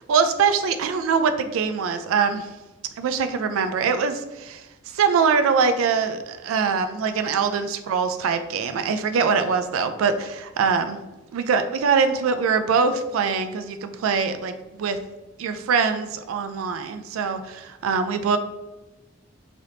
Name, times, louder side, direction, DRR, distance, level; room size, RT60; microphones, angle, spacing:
voice 1, 0.1-2.5 3.0-4.6 4.9-11.0 11.3-15.0 15.4-18.4, right 5 dB, 85° right, 9 dB, 0.3 m, -23 dB
3.3 x 2.6 x 2.7 m, 1.1 s
head